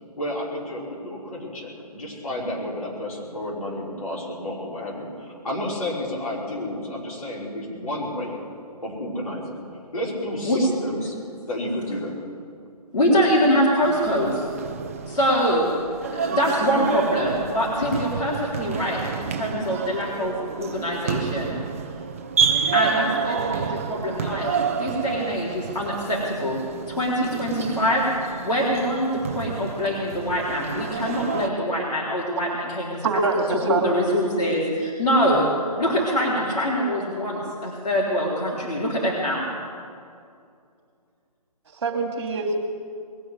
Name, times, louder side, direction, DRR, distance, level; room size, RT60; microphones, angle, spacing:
voice 1, 0.2-8.4 8.8-9.6 9.9-11.1 11.5-12.1, left 1 dB, 60° left, -4 dB, 5.3 m, -31 dB
voice 2, 12.9-14.4 15.0-15.7 16.1-21.6 22.7-24.5 24.8-28.1 28.4-33.1 33.7-35.4 35.8-39.5, equal, 75° left, -5 dB, 3.8 m, -24 dB
sound 1, 13.8-31.5, right 6 dB, 20° right, 0.5 m, -29 dB
voice 3, 33.0-34.1 41.7-42.6, right 3 dB, 40° right, 3 dB, 2.5 m, -24 dB
21.0 x 7.1 x 9.7 m, 2.3 s
hypercardioid pair, 160°, 21 cm